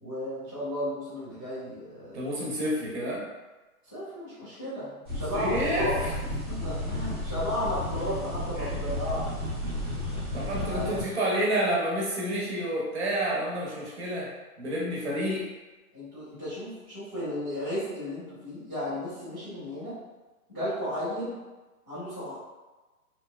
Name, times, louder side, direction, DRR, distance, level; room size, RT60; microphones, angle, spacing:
voice 1, 0.0-2.3 3.9-6.0 6.4-9.4 10.1-10.4 10.7-11.1 15.9-19.9 20.5-21.4 21.9-22.4, equal, 15° left, -17 dB, 0.4 m, -34 dB
voice 2, 2.1-3.2 5.3-5.9 8.6-8.7 10.3-14.3 14.6-15.4, right 1 dB, 45° right, -4 dB, 0.8 m, -29 dB
sound 1, 5.1-11.0, left 1 dB, 15° right, 0.9 m, -33 dB
2.7 x 2.1 x 2.3 m, 1.2 s
hypercardioid pair, 150°, 45 cm